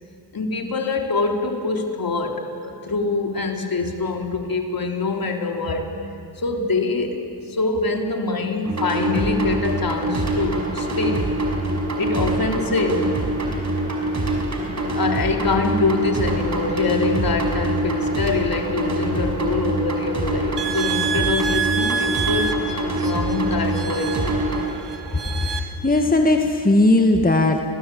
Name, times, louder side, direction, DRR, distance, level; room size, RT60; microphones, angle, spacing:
voice 1, 0.3-5.9 6.4-7.2 7.5-11.3 12.0-13.1 14.9-22.5 22.8-24.7, left 3 dB, 55° left, 3 dB, 3.7 m, -24 dB
sound 1, 8.6-24.6, right 1 dB, 40° right, 5.7 m, -24 dB
sound 2, 20.6-25.6, right 7 dB, 70° right, 2.0 m, -28 dB
voice 2, 25.3-27.6, left 2 dB, 20° left, 4 dB, 1.9 m, -18 dB
28.0 x 19.5 x 8.7 m, 2.8 s
cardioid pair, 55°, 43 cm